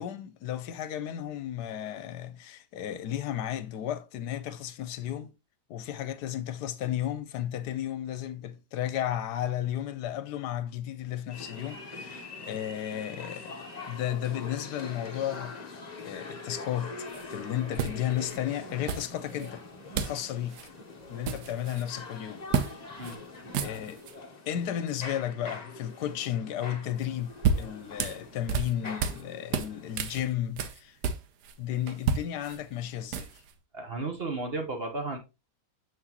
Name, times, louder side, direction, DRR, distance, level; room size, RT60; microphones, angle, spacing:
voice 1, 0.0-5.3 5.7-15.6 16.0-19.6 19.9-20.6 21.1-22.4 23.6-24.0 24.5-31.0 31.6-33.4, left 11 dB, 80° left, 1.2 m, -34 dB
sound 1, 11.3-30.0, left 3 dB, 30° left, 1.0 m, -43 dB
sound 2, 17.1-17.2 17.8-18.4 18.9-19.5 19.9-20.2 20.5-20.7 21.0-21.9 22.5-22.7 23.0-23.2 23.4-24.1 27.0-29.2 29.5-31.5 31.9-33.5, right 6 dB, 80° right, 1.3 m, -31 dB
voice 2, 33.7-35.2, right 3 dB, 40° right, 1.2 m, -33 dB
7.0 x 6.1 x 2.9 m
omnidirectional pair, 1.8 m